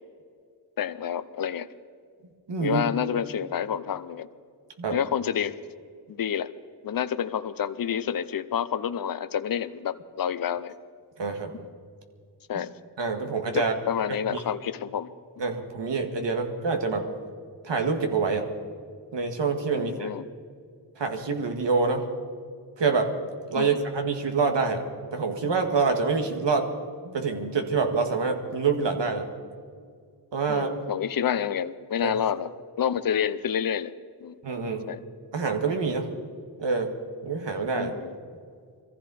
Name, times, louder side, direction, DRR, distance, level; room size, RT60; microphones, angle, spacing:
voice 1, 0.8-1.7 2.6-4.3 4.9-5.6 6.1-6.5 6.8-10.7 11.5-11.6 12.5-12.7 13.5-15.1 19.7-20.2 23.5-23.8 30.5-32.5 32.8-33.9 34.2-34.4 34.9-35.0 37.8-38.1, left 8 dB, 50° left, 13 dB, 0.7 m, -28 dB
voice 2, 2.5-2.9 4.8-5.0 11.2-11.5 13.0-13.7 14.1-14.4 15.4-17.1 17.6-18.5 19.1-20.1 21.0-22.1 22.8-23.1 23.5-24.8 25.1-26.7 27.0-29.3 30.3-30.8 32.0-32.1 34.4-34.9 35.3-36.1 36.6-36.9 37.2-37.9, right 4 dB, 75° right, 5 dB, 1.9 m, -26 dB
22.0 x 15.0 x 4.2 m, 2.1 s
cardioid pair, 65°, 43 cm